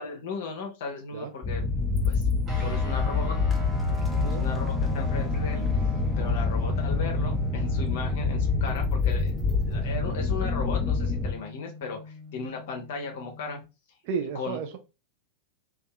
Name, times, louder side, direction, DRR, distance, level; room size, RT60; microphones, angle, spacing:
voice 1, 0.0-1.6 2.0-2.3 2.6-3.4 4.1-5.7 6.2-9.3 9.6-13.6 14.3-14.8, left 4 dB, 55° left, 3 dB, 0.6 m, -36 dB
sound 1, 1.4-11.3, left 4 dB, 5° left, 0.6 m, -26 dB
sound 2, 2.5-13.7, left 3 dB, 25° right, 1.0 m, -40 dB
voice 2, 4.1-4.5 14.0-14.8, right 6 dB, 45° right, 6 dB, 0.4 m, -33 dB
2.6 x 2.3 x 2.2 m, 0.28 s
figure-of-eight pair, 90°, 0 cm